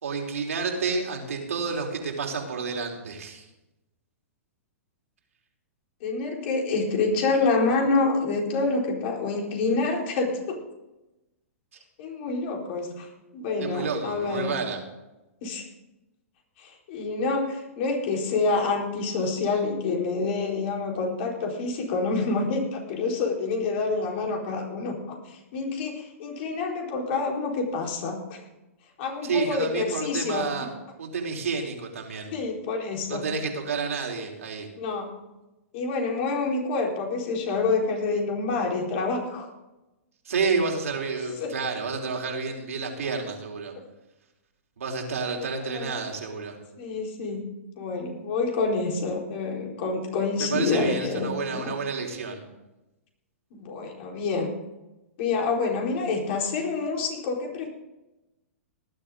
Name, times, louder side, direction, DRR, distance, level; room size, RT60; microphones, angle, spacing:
voice 1, 0.0-3.5 13.6-14.8 29.2-30.7 31.0-32.3 33.1-34.7 40.3-43.7 44.8-46.6 50.4-52.4, right 4 dB, 75° right, 1 dB, 3.6 m, -30 dB
voice 2, 6.0-10.6 12.0-13.1 13.3-14.6 15.4-15.6 16.6-28.4 29.0-30.5 32.3-33.2 34.8-35.1 35.7-39.5 41.4-41.5 45.6-45.9 46.8-47.5 47.8-51.7 53.5-54.5 55.2-57.7, left 3 dB, 50° left, 0 dB, 4.4 m, -27 dB
18.5 x 11.5 x 3.9 m, 0.97 s
hypercardioid pair, 120°, 8 cm